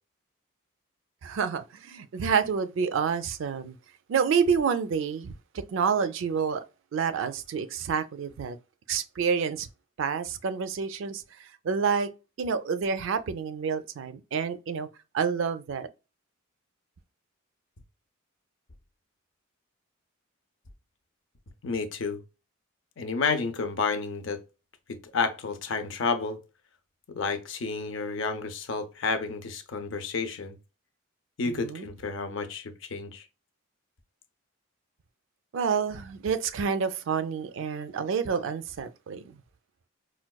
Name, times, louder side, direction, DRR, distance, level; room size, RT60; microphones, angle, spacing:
voice 1, 1.2-3.8 4.1-6.6 6.9-8.6 8.9-9.7 10.0-12.1 12.4-14.9 15.1-15.9 31.4-31.9 35.5-39.4, right 6 dB, 65° right, 0.3 m, -28 dB
voice 2, 21.6-22.2 23.0-24.4 24.9-26.4 27.1-30.6 31.4-33.2, left 4 dB, 60° left, 0.5 m, -30 dB
4.5 x 2.2 x 2.2 m
head